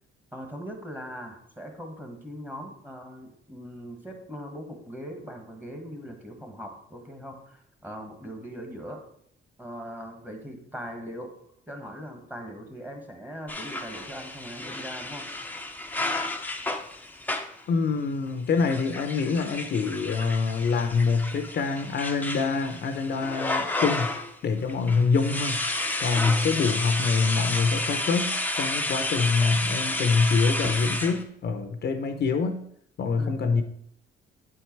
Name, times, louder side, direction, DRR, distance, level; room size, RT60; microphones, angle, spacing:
voice 1, 0.3-9.0 9.6-11.4 11.7-15.3 33.2-33.5, equal, 10° right, 3 dB, 1.5 m, -40 dB
sound 1, 13.5-17.6 18.5-24.3 24.7-31.2, left 2 dB, 10° left, 0.7 m, -31 dB
voice 2, 17.7-24.1 24.4-25.7 26.0-32.6 33.0-33.6, left 4 dB, 55° left, 6 dB, 0.7 m, -25 dB
7.9 x 4.6 x 4.5 m, 0.69 s
cardioid pair, 90°, 20 cm